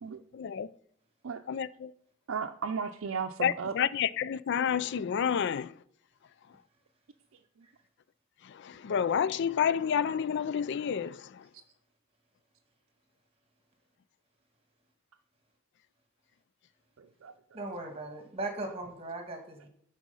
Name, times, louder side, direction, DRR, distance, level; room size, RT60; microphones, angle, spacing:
voice 1, 0.3-0.7 1.5-1.9 3.4-5.7 8.8-11.2, left 8 dB, 60° left, 0.4 m, -29 dB
voice 2, 2.3-3.8 17.0-17.3 17.8-17.9, right 5 dB, 85° right, 0.5 m, -35 dB
voice 3, 17.5-19.7, right 2 dB, 30° right, 1.6 m, -38 dB
11.0 x 4.2 x 5.4 m
head